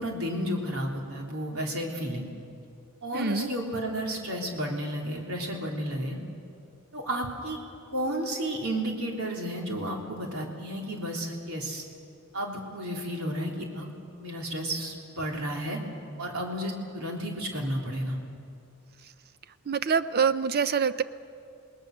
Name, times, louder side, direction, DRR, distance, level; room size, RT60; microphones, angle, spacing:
voice 1, 0.0-2.3 3.0-6.2 6.9-7.6 7.9-11.8 12.3-15.8 16.2-18.2, right 1 dB, 80° right, -1 dB, 3.6 m, -32 dB
voice 2, 3.1-3.5 19.7-21.0, right 6 dB, 45° right, 13 dB, 0.5 m, -25 dB
28.0 x 19.5 x 6.7 m, 2.4 s
head